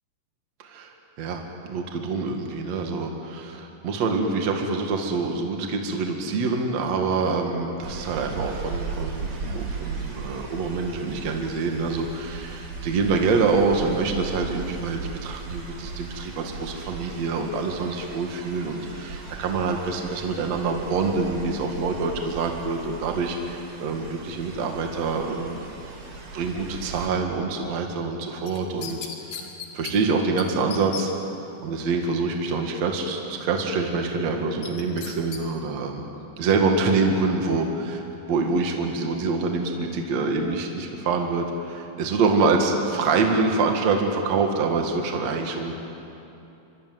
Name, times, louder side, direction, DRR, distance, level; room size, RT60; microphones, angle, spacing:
voice 1, 0.6-1.4 1.7-25.7 26.3-29.0 29.3-29.5 29.7-31.1 31.6-36.0 36.4-38.0 38.3-45.7, right 4 dB, 55° right, 3 dB, 3.0 m, -26 dB
sound 1, 7.8-27.1, right 4 dB, 80° right, 5.5 m, -37 dB
sound 2, 28.5-29.9 30.4-30.5 30.7-31.1 34.6-35.4 35.8-35.9, left 7 dB, 85° left, 4.0 m, -36 dB
25.5 x 25.0 x 9.4 m, 2.8 s
omnidirectional pair, 3.9 m